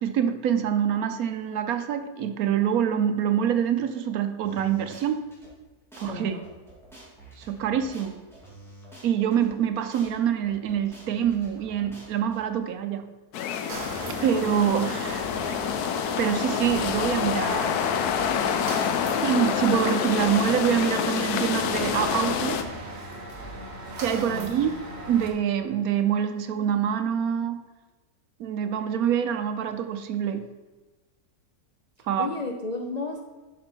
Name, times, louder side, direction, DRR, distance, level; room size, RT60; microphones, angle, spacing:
voice 1, 0.0-5.2 6.0-6.4 7.4-8.2 9.0-13.1 14.2-15.3 16.2-17.8 19.2-22.6 24.0-24.7 25.1-27.6 28.4-30.4 32.1-32.3, right 8 dB, 75° right, 9 dB, 1.1 m, -25 dB
sound 1, 4.4-5.5 5.9-6.1 6.4-9.5 9.9-10.1 10.4-12.4, right 1 dB, ahead, 2.8 m, -48 dB
voice 2, 6.0-6.4 24.3-24.8 32.0-33.2, left 3 dB, 45° left, 0 dB, 0.5 m, -34 dB
sound 2, 13.3-22.6, left 7 dB, 85° left, 1.2 m, -27 dB
The Crossley Gas Engine turning down, 13.7-25.3, right 1 dB, 45° right, 1.3 m, -38 dB
9.7 x 6.2 x 4.4 m, 1.2 s
omnidirectional pair, 1.6 m